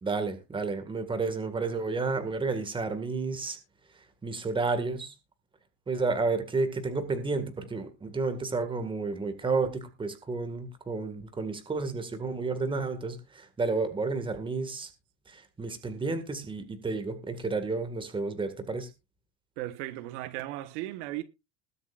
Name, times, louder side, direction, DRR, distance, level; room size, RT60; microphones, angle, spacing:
voice 1, 0.0-3.6 4.2-5.1 5.9-14.9 15.3-18.9, right 3 dB, 10° right, 1.8 m, -31 dB
voice 2, 19.6-21.2, right 16 dB, 85° right, 1.5 m, -36 dB
20.5 x 8.0 x 2.5 m
cardioid pair, 170°, 44 cm